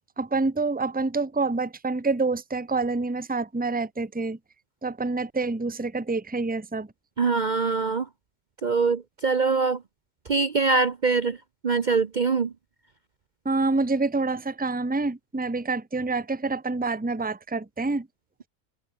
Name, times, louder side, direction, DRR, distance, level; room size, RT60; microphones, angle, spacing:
voice 1, 0.2-4.4 4.8-6.9 13.4-18.1, right 3 dB, 10° right, 0.9 m, -27 dB
voice 2, 7.2-8.1 8.6-9.8 10.3-11.4 11.6-12.5, right 4 dB, 40° right, 0.9 m, -23 dB
omnidirectional pair, 1.3 m